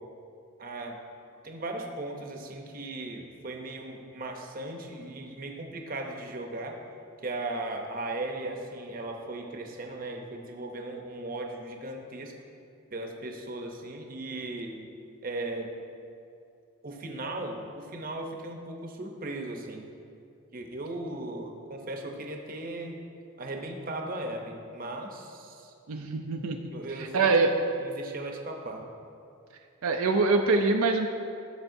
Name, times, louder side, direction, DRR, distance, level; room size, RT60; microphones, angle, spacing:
voice 1, 0.6-1.0 1.4-6.7 7.2-12.3 12.9-14.8 15.2-15.7 16.8-19.8 20.5-23.0 23.4-25.7 26.7-27.3 27.8-28.8, right 2 dB, 40° right, 2 dB, 0.8 m, -37 dB
voice 2, 25.9-27.5 29.8-31.1, right 3 dB, 80° right, 3 dB, 0.5 m, -25 dB
13.5 x 6.7 x 2.7 m, 2.5 s
head